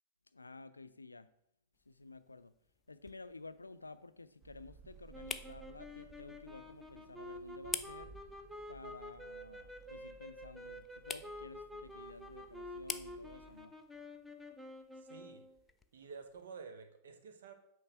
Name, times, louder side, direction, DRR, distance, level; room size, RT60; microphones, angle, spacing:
voice 1, 0.3-1.3 1.9-2.5 2.9-8.1 8.7-13.8, left 3 dB, 80° left, 12 dB, 0.4 m, -52 dB
sound 1, 1.7-16.5, left 5 dB, 15° left, 0.4 m, -50 dB
sound 2, 4.4-13.7, right 6 dB, 35° right, 0.7 m, -59 dB
sound 3, 5.1-15.6, left 1 dB, 5° right, 0.8 m, -49 dB
voice 2, 15.0-15.5 15.9-17.5, right 5 dB, 65° right, 7 dB, 0.9 m, -51 dB
8.5 x 3.2 x 5.9 m, 0.73 s
figure-of-eight pair, 90°, 0 cm